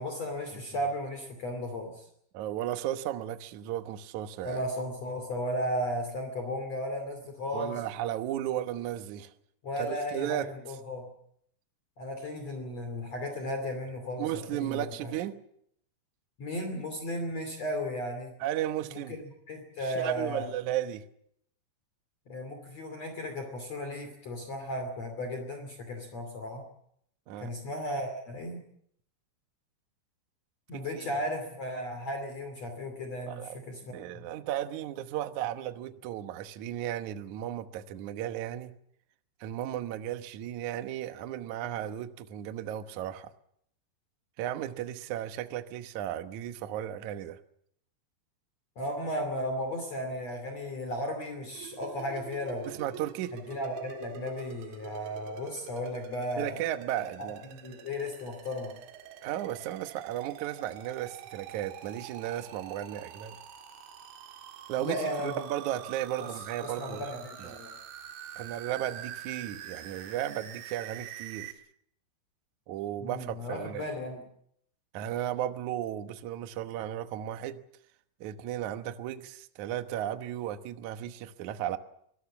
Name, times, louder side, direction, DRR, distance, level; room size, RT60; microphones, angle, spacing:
voice 1, 0.0-2.1 4.4-7.8 9.6-11.1 12.0-15.1 16.4-18.3 18.9-19.2 19.5-20.4 22.3-26.6 27.4-28.6 30.7-34.2 48.8-52.7 53.3-56.6 57.2-58.7 64.8-65.4 66.6-67.7 73.0-74.2, equal, 40° left, 3.4 m, -35 dB
voice 2, 2.3-4.6 7.5-9.3 9.8-10.5 14.2-15.4 18.4-19.2 19.8-21.1 27.3-27.5 30.7-31.1 33.3-38.7 39.4-43.3 44.4-47.4 52.7-53.4 56.4-57.4 59.2-63.4 64.7-67.0 67.4-67.6 68.4-71.5 72.7-73.9 74.9-77.6 78.2-81.8, right 12 dB, 70° right, 1.9 m, -35 dB
sound 1, 51.6-71.5, right 10 dB, 90° right, 4.0 m, -46 dB
25.0 x 19.0 x 7.2 m
omnidirectional pair, 5.0 m